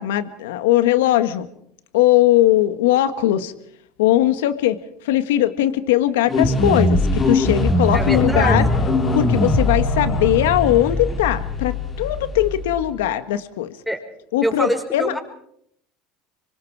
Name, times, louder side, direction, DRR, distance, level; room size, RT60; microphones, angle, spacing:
voice 1, 0.0-1.5 1.9-3.5 4.0-8.6 9.1-13.7 14.3-15.1, left 13 dB, 90° left, 11 dB, 1.5 m, -19 dB
sound 1, 6.3-12.9, left 2 dB, 30° left, 4.3 m, -21 dB
voice 2, 7.9-8.8 13.9-14.0 14.4-15.2, right 1 dB, ahead, 4 dB, 6.1 m, -24 dB
26.0 x 25.0 x 4.8 m, 0.71 s
supercardioid pair, 100°, 0 cm